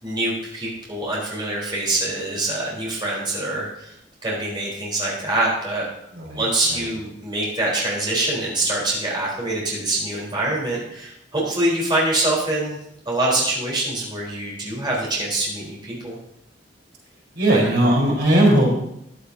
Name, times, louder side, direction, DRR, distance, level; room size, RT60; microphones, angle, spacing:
voice 1, 0.0-3.9 4.2-5.8 6.4-12.8 13.1-16.2, right 2 dB, 25° right, -4 dB, 3.9 m, -24 dB
voice 2, 6.1-6.9 17.3-18.7, right 1 dB, 65° right, -3 dB, 4.2 m, -18 dB
14.0 x 11.5 x 2.8 m, 0.76 s
head